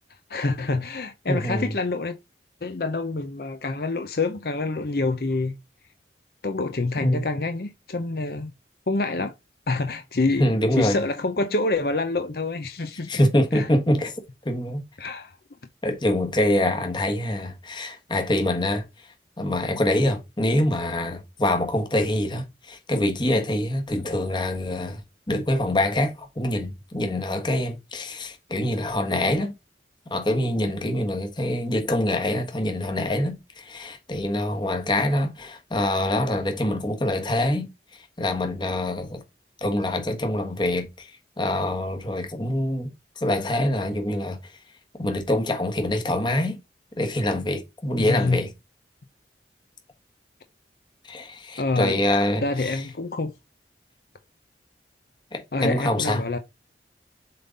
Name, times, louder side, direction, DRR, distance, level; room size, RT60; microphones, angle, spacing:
voice 1, 0.3-2.2 2.6-5.5 6.4-8.5 8.9-9.3 9.7-13.3 13.5-13.7 15.0-15.4 48.0-48.4 51.6-52.0 52.4-53.3 55.5-56.4, left 3 dB, 55° left, 0.7 m, -26 dB
voice 2, 1.3-1.7 7.0-7.2 10.4-11.0 13.1-14.1 14.4-14.8 15.8-18.8 19.4-25.0 25.3-29.5 30.1-37.7 38.2-39.2 39.6-41.1 41.4-42.9 43.2-44.5 45.0-46.6 47.0-48.5 51.0-52.8 55.3-56.2, left 1 dB, 25° left, 1.3 m, -25 dB
7.6 x 3.8 x 4.0 m
head